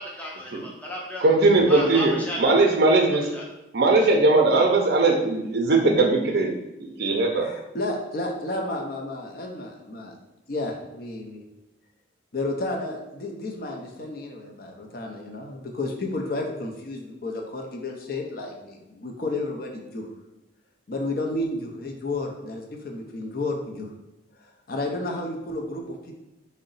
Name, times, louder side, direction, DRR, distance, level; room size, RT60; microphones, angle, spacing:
voice 1, 0.0-1.2 1.7-2.4 3.3-3.4, left 1 dB, 10° left, -3 dB, 0.5 m, -34 dB
voice 2, 1.2-3.3 3.7-6.5 6.8-7.5, right 3 dB, 55° right, 2 dB, 0.5 m, -19 dB
voice 3, 7.3-10.1 10.5-11.4 12.3-20.1 20.9-23.9 24.7-26.1, left 2 dB, 50° left, 1 dB, 0.5 m, -32 dB
3.8 x 2.1 x 3.9 m, 0.97 s
head